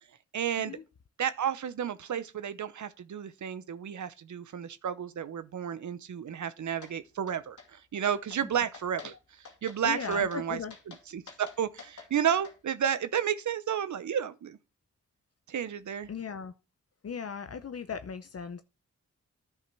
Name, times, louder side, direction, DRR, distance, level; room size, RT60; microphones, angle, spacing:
voice 1, 0.3-0.8 1.2-9.1 9.6-10.6 11.1-14.6 15.5-16.1, right 8 dB, 75° right, 0.8 m, -32 dB
sound 1, 6.8-6.9 7.3-7.7 8.0-8.4 8.7-9.1 9.4-9.8 10.1-10.4 10.7-12.6, left 5 dB, 75° left, 2.2 m, -48 dB
voice 2, 9.8-10.7 16.1-16.5 17.0-18.6, left 6 dB, 55° left, 0.8 m, -37 dB
10.0 x 5.7 x 6.0 m
cardioid pair, 50°, 30 cm